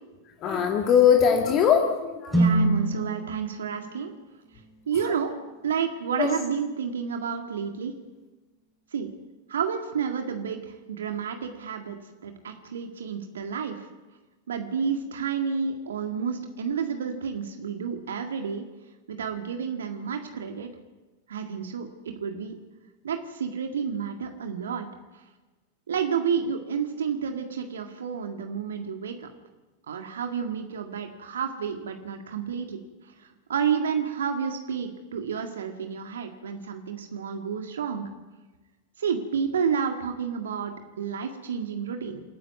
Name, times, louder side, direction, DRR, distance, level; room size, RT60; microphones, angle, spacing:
voice 1, 0.4-2.4 6.2-6.3, left 8 dB, 35° left, 2 dB, 2.2 m, -20 dB
sound 1, 2.3-6.4, right 1 dB, 5° left, 5.0 m, -28 dB
voice 2, 2.3-4.1 4.9-5.4 5.6-7.9 8.9-9.1 9.5-12.0 12.2-13.9 14.5-18.7 19.1-20.7 21.3-22.6 23.0-24.9 25.9-29.3 29.9-32.8 33.0-38.1 39.0-42.2, right 7 dB, 65° right, 4 dB, 1.9 m, -30 dB
27.5 x 11.0 x 9.4 m, 1.2 s
figure-of-eight pair, 90°, 0 cm